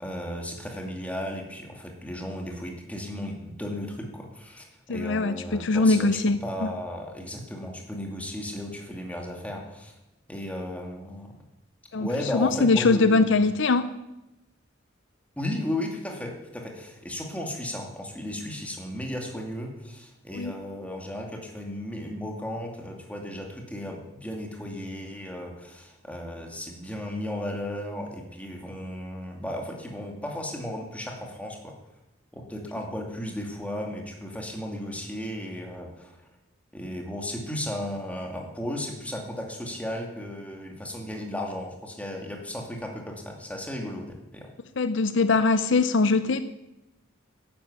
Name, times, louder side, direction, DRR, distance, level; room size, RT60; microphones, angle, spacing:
voice 1, 0.0-6.1 6.4-9.9 10.3-11.4 11.9-13.4 15.4-31.7 32.3-36.3 36.7-44.5, left 1 dB, 5° left, 1 dB, 2.4 m, -35 dB
voice 2, 4.9-6.7 11.9-12.1 12.3-13.9 20.3-20.5 44.8-46.4, left 3 dB, 65° left, 12 dB, 0.6 m, -22 dB
11.5 x 10.0 x 8.2 m, 0.96 s
head